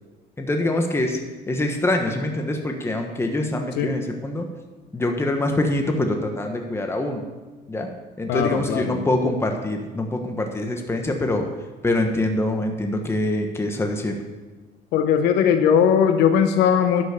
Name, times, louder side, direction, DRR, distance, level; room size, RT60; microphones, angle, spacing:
voice 1, 0.4-1.2 1.5-4.5 4.9-7.2 7.7-7.9 8.2-11.4 11.8-14.1, left 1 dB, 15° left, 3 dB, 1.3 m, -24 dB
voice 2, 8.3-9.1 14.9-17.0, left 8 dB, 85° left, 7 dB, 0.9 m, -19 dB
11.5 x 6.2 x 6.5 m, 1.3 s
cardioid pair, 110°, 17 cm